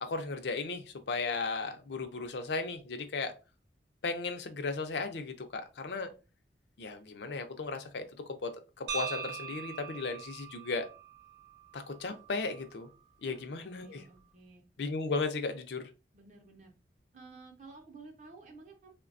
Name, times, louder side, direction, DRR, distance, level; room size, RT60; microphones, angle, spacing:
voice 1, 0.0-3.3 4.0-6.1 6.8-8.1 8.4-8.5 8.8-10.9 11.7-12.9 13.2-14.0 14.8-15.9, left 3 dB, 75° left, 6 dB, 0.5 m, -35 dB
sound 1, 8.9-12.9, right 5 dB, 85° right, 0.7 m, -42 dB
voice 2, 13.2-14.6 16.1-16.7 17.1-18.9, right 3 dB, 45° right, 2 dB, 0.5 m, -53 dB
3.2 x 2.2 x 2.4 m, 0.31 s
head